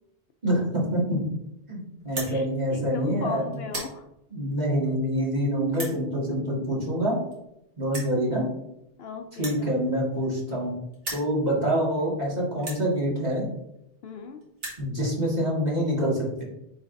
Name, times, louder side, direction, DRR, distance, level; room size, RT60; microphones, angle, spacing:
voice 1, 0.4-1.2 1.7-3.6 4.3-7.2 7.8-8.5 9.4-10.7 11.1-13.5 14.8-16.4, equal, 35° right, -5 dB, 2.0 m, -26 dB
sound 1, 2.0-2.3 3.0-3.2 3.5-3.9 4.7-4.8 5.7-6.0 7.0-7.1 7.3-7.4 7.9-8.2 9.3-10.7 10.9-11.3 12.0-12.1 12.6-12.8 13.8-13.9 14.1-14.2 14.4-14.8, right 1 dB, 85° right, 2.2 m, -36 dB
voice 2, 2.2-4.1 9.0-9.8 14.0-14.4, left 5 dB, 65° left, 6 dB, 0.8 m, -38 dB
9.1 x 4.0 x 2.6 m, 0.84 s
omnidirectional pair, 1.2 m